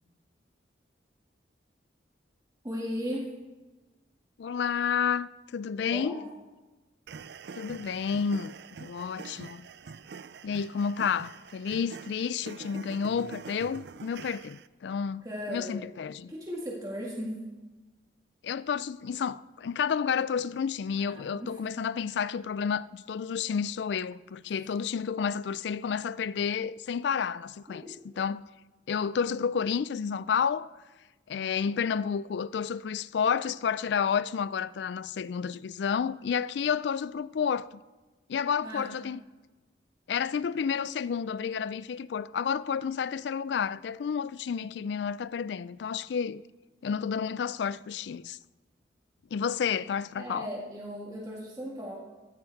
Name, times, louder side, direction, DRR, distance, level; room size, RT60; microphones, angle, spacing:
voice 1, 2.6-3.3 5.9-6.2 15.2-15.8 16.3-17.4 21.0-21.6 27.7-27.9 31.3-31.8 38.6-38.9 50.2-52.0, equal, 20° right, 1.8 m, -37 dB
voice 2, 4.4-6.2 7.6-8.5 8.8-9.7 10.4-16.3 18.4-27.8 28.2-28.5 28.9-30.7 31.3-37.7 38.3-39.2 40.1-46.4 46.8-48.4 49.3-50.5, left 6 dB, 75° left, 0.3 m, -30 dB
sound 1, 7.1-14.7, right 5 dB, 65° right, 0.4 m, -45 dB
15.0 x 10.5 x 4.6 m
head